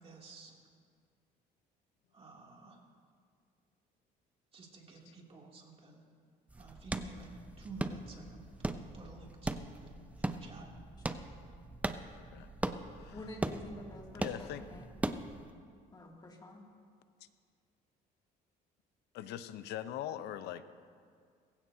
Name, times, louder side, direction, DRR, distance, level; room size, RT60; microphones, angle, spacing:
voice 1, 0.0-0.5 2.1-2.8 4.5-6.0 6.6-7.3 7.6-8.4 8.9-9.9 10.2-10.7, right 3 dB, 35° right, -1 dB, 2.8 m, -51 dB
sound 1, 6.5-15.5, right 2 dB, 10° right, 0.6 m, -40 dB
voice 2, 12.1-12.5 12.9-13.2 14.1-14.6 19.1-20.6, left 11 dB, 80° left, 12 dB, 0.7 m, -42 dB
voice 3, 13.1-14.9 15.9-16.6, left 1 dB, 25° left, -1 dB, 2.5 m, -48 dB
20.0 x 16.0 x 2.8 m, 2.1 s
cardioid pair, 110°, 17 cm